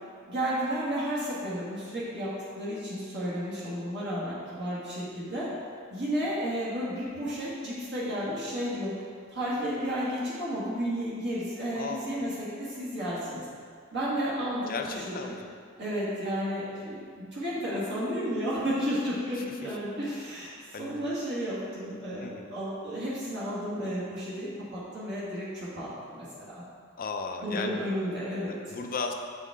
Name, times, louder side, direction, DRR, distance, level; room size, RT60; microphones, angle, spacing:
voice 1, 0.3-5.5 5.9-8.9 9.3-13.5 13.9-15.3 15.7-20.5 20.8-26.6 27.4-28.6, equal, 55° right, -9 dB, 1.9 m, -32 dB
voice 2, 11.7-12.2 14.7-15.4 19.6-19.7 20.7-21.0 22.2-22.5 27.0-27.8 28.5-29.1, left 4 dB, 45° left, 4 dB, 0.5 m, -35 dB
7.6 x 5.5 x 3.6 m, 2.1 s
head